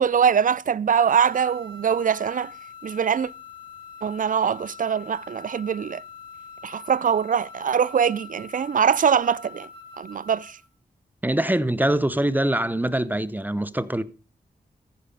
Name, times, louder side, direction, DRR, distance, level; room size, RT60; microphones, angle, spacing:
voice 1, 0.0-2.5 2.8-3.3 4.0-6.0 6.6-9.7 10.0-10.6, right 7 dB, 50° right, 0.4 m, -22 dB
sound 1, 1.1-10.7, left 5 dB, 30° right, 4.1 m, -44 dB
voice 2, 11.2-14.0, right 1 dB, 10° right, 0.8 m, -23 dB
14.5 x 5.0 x 5.4 m
cardioid pair, 45°, 18 cm